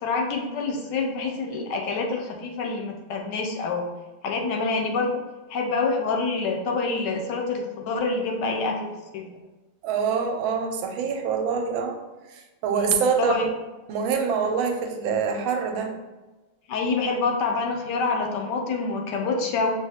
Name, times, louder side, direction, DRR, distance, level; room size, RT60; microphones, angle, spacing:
voice 1, 0.0-3.9 4.2-5.1 5.5-9.3 12.7-13.5 16.7-19.7, left 4 dB, 75° left, 2 dB, 1.1 m, -27 dB
voice 2, 9.8-12.0 12.3-13.5 13.9-16.0, right 6 dB, 90° right, 4 dB, 1.4 m, -25 dB
6.0 x 2.4 x 2.8 m, 1.1 s
omnidirectional pair, 2.1 m